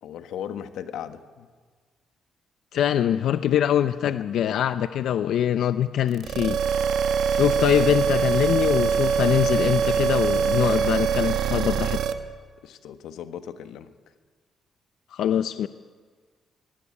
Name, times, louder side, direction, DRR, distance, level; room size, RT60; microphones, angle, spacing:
voice 1, 0.0-1.5 4.0-4.1 7.4-7.6 12.6-13.9, left 9 dB, 90° left, 8 dB, 1.5 m, -37 dB
voice 2, 2.7-6.6 7.3-12.0 15.1-15.7, left 10 dB, 65° left, 11 dB, 0.6 m, -23 dB
sound 1, 6.1-12.1, right 6 dB, 60° right, 1.4 m, -23 dB
23.0 x 18.5 x 9.8 m, 1.5 s
cardioid pair, 175°, 0 cm